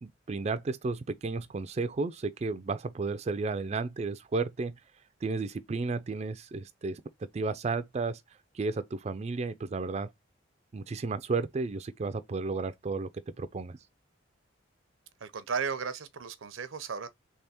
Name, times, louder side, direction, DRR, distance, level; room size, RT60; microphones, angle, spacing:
voice 1, 0.0-4.7 5.2-7.0 7.3-8.2 8.5-10.1 10.7-13.1 13.4-13.8, right 3 dB, 35° right, 0.3 m, -33 dB
voice 2, 15.2-17.1, right 6 dB, 80° right, 0.6 m, -35 dB
3.4 x 3.2 x 4.2 m
head